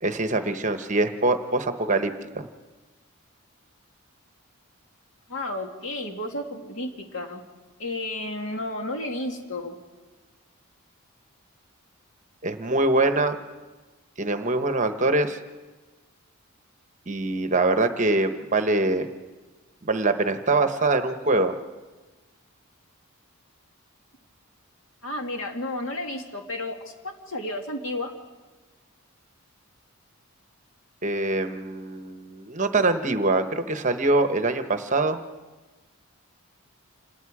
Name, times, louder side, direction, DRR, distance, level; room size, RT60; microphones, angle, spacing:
voice 1, 0.0-2.5 12.4-13.4 14.2-15.4 17.1-19.1 19.8-21.5 31.0-35.2, right 2 dB, 35° right, 8 dB, 1.0 m, -24 dB
voice 2, 5.3-7.4 7.8-9.8 25.0-28.1, left 1 dB, 65° left, 3 dB, 2.4 m, -32 dB
27.5 x 20.0 x 4.9 m, 1.2 s
head